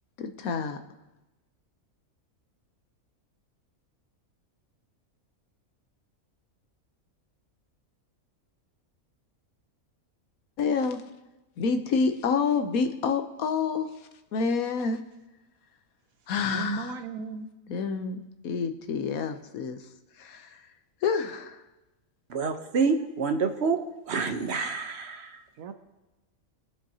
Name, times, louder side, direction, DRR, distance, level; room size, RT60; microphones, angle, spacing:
voice 1, 0.2-0.8 10.6-11.0 11.6-13.9 14.3-15.0 16.3-16.9 17.7-19.8 20.2-20.5 21.0-21.6, left 5 dB, 90° left, 7 dB, 1.3 m, -28 dB
voice 2, 16.5-17.5 25.6-25.7, right 4 dB, 80° right, 8 dB, 1.2 m, -35 dB
voice 3, 22.3-23.8 24.1-25.4, right 5 dB, 55° right, 6 dB, 1.1 m, -27 dB
21.5 x 7.5 x 2.8 m, 1.0 s
omnidirectional pair, 1.4 m